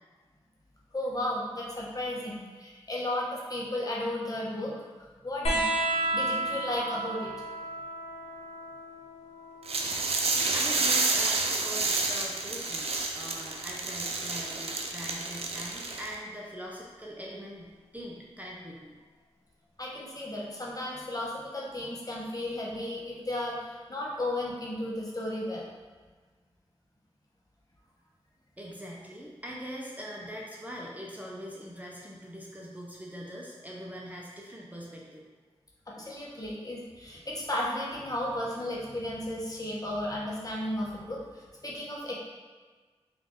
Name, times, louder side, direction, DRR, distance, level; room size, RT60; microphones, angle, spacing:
voice 1, 0.9-4.8 5.2-5.6 5.9-7.3 19.8-25.6 35.9-42.2, left 1 dB, 35° left, -4 dB, 0.9 m, -34 dB
sound 1, 5.4-12.5 13.9-14.7 16.0-16.1, right 1 dB, 80° left, 0.8 m, -34 dB
sound 2, 9.7-16.2, right 3 dB, 70° right, 0.4 m, -29 dB
voice 2, 10.5-17.7 17.9-19.0 28.6-35.3, equal, 15° right, -3 dB, 0.6 m, -42 dB
3.7 x 2.5 x 3.6 m, 1.4 s
cardioid pair, 50°, 11 cm